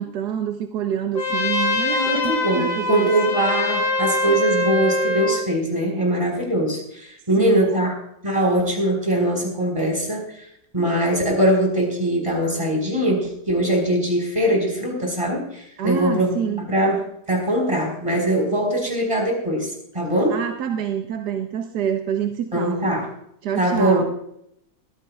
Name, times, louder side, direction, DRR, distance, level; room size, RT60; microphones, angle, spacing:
voice 1, 0.0-3.1 7.4-7.8 15.8-16.7 20.3-22.9 23.4-24.0, right 9 dB, 80° right, 5 dB, 1.4 m, -27 dB
Trumpet, 1.2-5.4, left 2 dB, 55° left, 4.3 m, -23 dB
voice 2, 1.9-7.9 8.2-10.5 10.7-16.3 16.7-17.0 17.3-20.4 22.5-23.1 23.5-24.0, right 1 dB, 20° right, 1 dB, 4.5 m, -22 dB
21.5 x 15.0 x 2.4 m, 0.74 s
omnidirectional pair, 1.7 m